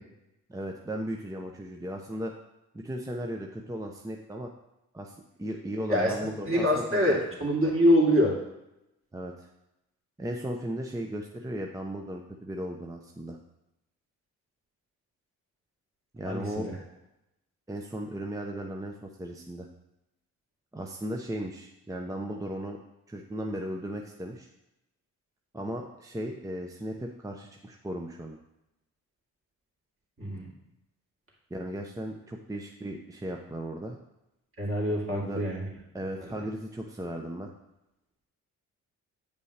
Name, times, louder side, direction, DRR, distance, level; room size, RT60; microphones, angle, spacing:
voice 1, 0.5-2.3 2.7-4.5 4.9-7.2 9.1-9.3 10.2-13.4 16.1-16.7 17.7-19.7 20.7-22.8 23.1-24.5 25.5-28.4 31.5-34.0 35.1-35.4 35.9-37.5, right 1 dB, 10° right, 1 dB, 0.8 m, -36 dB
voice 2, 5.9-8.3 16.2-16.7 30.2-30.5 34.6-35.7, equal, 35° right, -3 dB, 2.6 m, -25 dB
8.0 x 5.3 x 3.4 m, 0.89 s
hypercardioid pair, 45°, 39 cm